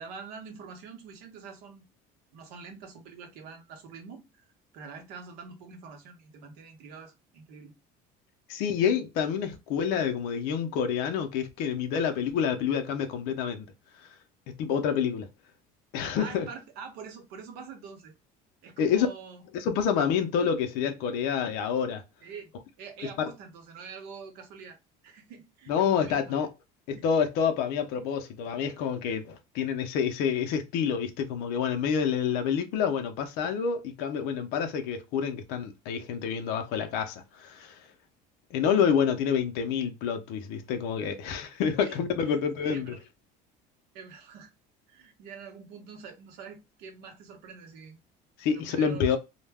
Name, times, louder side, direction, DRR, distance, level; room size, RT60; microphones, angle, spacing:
voice 1, 0.0-1.8 2.3-7.7 16.2-18.1 18.6-19.4 22.2-22.5 22.8-24.8 25.0-26.3 26.9-27.0 41.8-42.0 42.2-43.0 43.9-44.5 44.9-48.0 48.5-49.2, right 6 dB, 75° right, 0.8 m, -45 dB
voice 2, 8.5-13.7 14.6-15.3 15.9-16.5 18.8-19.1 19.5-22.0 23.2-23.3 25.7-26.5 26.9-37.8 38.5-43.0 48.4-49.2, left 7 dB, 70° left, 0.5 m, -28 dB
2.2 x 2.1 x 3.3 m
cardioid pair, 175°, 17 cm